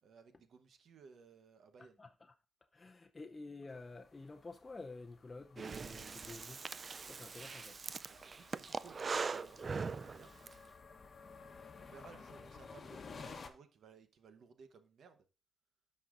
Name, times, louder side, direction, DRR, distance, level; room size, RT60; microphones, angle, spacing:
voice 1, 0.0-2.0 8.1-10.4 11.8-15.3, right 5 dB, 85° right, 0.9 m, -60 dB
voice 2, 2.7-6.6 7.1-7.8, left 3 dB, 35° left, 0.6 m, -50 dB
sound 1, 3.7-13.5, left 4 dB, 60° left, 0.9 m, -55 dB
Breathing, 5.6-10.5, right 4 dB, 50° right, 0.3 m, -41 dB
13.0 x 5.5 x 2.5 m
cardioid pair, 75°, 0 cm